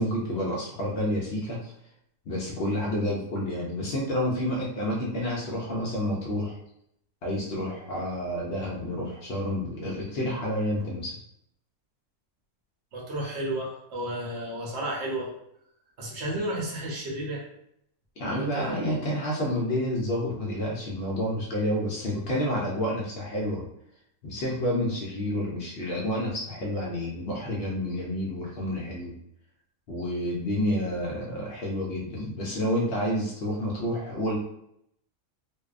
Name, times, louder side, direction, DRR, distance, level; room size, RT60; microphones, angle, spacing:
voice 1, 0.0-1.7 2.3-6.6 7.2-11.2 18.2-23.6 24.2-29.1 29.9-34.4, left 1 dB, 65° left, -4 dB, 0.6 m, -29 dB
voice 2, 12.9-15.3 16.0-17.4 18.3-19.0, right 1 dB, 55° right, -3 dB, 0.9 m, -32 dB
2.6 x 2.1 x 2.4 m, 0.75 s
omnidirectional pair, 1.6 m